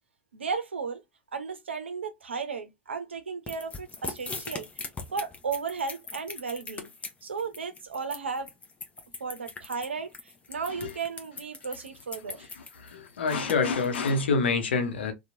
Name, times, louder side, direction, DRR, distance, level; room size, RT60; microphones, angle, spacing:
voice 1, 0.3-1.0 1.3-6.9 7.2-8.5 9.2-10.1 10.5-12.5, right 5 dB, 85° right, 0.6 m, -34 dB
sound 1, 3.5-14.1, left 4 dB, 20° left, 0.6 m, -40 dB
voice 2, 12.4-15.1, left 4 dB, 75° left, 0.8 m, -27 dB
2.9 x 2.3 x 2.5 m
figure-of-eight pair, 80°, 6 cm